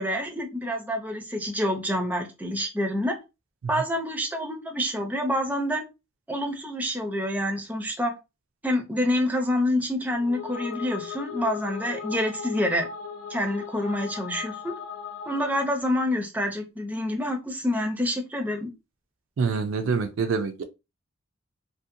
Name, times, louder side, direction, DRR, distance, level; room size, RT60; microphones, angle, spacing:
voice 1, 0.0-3.2 3.7-5.8 6.3-8.1 8.6-12.9 13.3-14.7 15.3-18.7, left 1 dB, 10° right, 0.5 m, -27 dB
sound 1, 10.1-15.9, left 6 dB, 75° left, 0.4 m, -38 dB
voice 2, 19.4-20.6, right 5 dB, 65° right, 0.4 m, -26 dB
2.6 x 2.1 x 2.5 m
head